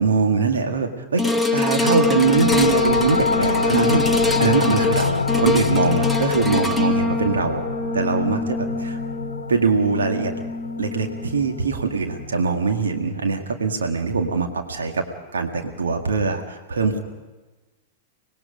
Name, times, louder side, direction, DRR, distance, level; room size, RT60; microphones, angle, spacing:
voice 1, 0.0-7.6 7.9-9.0 9.5-10.3 10.8-15.0 15.3-17.0, right 4 dB, 75° right, 4 dB, 2.0 m, -22 dB
sound 1, 1.2-11.6 12.1-12.2, left 2 dB, ahead, 1.2 m, -24 dB
sound 2, 2.0-13.4, left 5 dB, 80° left, 0.9 m, -27 dB
25.0 x 19.5 x 5.3 m, 1.2 s
figure-of-eight pair, 95°, 0 cm